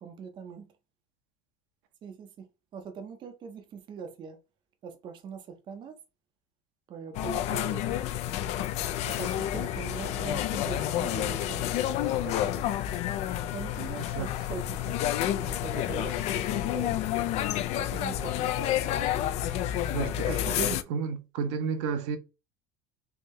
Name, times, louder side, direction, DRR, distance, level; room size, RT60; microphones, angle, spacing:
voice 1, 0.0-0.7 2.0-2.5 2.7-4.4 4.8-6.0 6.9-8.0 9.0-12.7 13.5-15.0 15.3-17.0 17.7-18.7, right 6 dB, 35° right, 0.6 m, -41 dB
sound 1, 7.1-20.8, left 12 dB, 50° left, 0.4 m, -29 dB
voice 2, 19.9-22.2, right 6 dB, 75° right, 0.8 m, -32 dB
3.5 x 2.7 x 3.1 m
cardioid pair, 140°, 15 cm